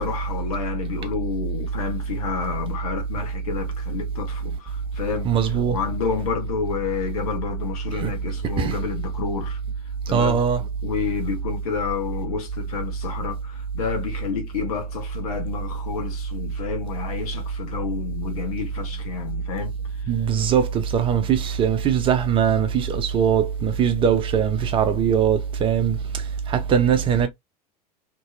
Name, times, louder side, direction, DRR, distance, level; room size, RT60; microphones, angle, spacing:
voice 1, 0.0-5.3 5.7-9.6 10.1-10.4 10.8-19.7, left 7 dB, 60° left, 1.0 m, -30 dB
voice 2, 5.2-5.8 7.9-8.2 8.6-8.8 10.1-10.6 20.1-27.3, right 8 dB, 25° right, 0.5 m, -21 dB
2.9 x 2.7 x 2.5 m
figure-of-eight pair, 85°, 21 cm